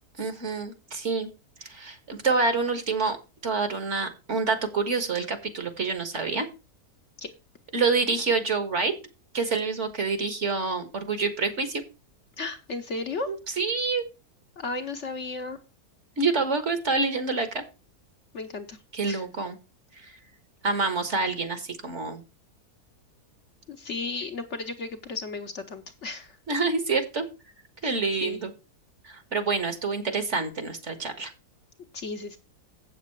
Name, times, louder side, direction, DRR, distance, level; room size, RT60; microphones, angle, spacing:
voice 1, 0.2-1.3 1.6-3.2 3.4-6.5 7.7-8.9 9.3-11.8 13.3-14.0 16.2-17.6 18.9-19.6 20.0-20.2 20.6-22.2 26.5-27.3 27.8-28.5 29.0-31.3, right 4 dB, 50° right, 9 dB, 1.7 m, -27 dB
voice 2, 12.4-13.3 14.6-15.6 18.3-19.2 23.7-26.4 27.8-28.4 31.9-32.4, left 3 dB, 55° left, 6 dB, 1.1 m, -35 dB
8.0 x 7.5 x 4.6 m, 0.29 s
omnidirectional pair, 1.7 m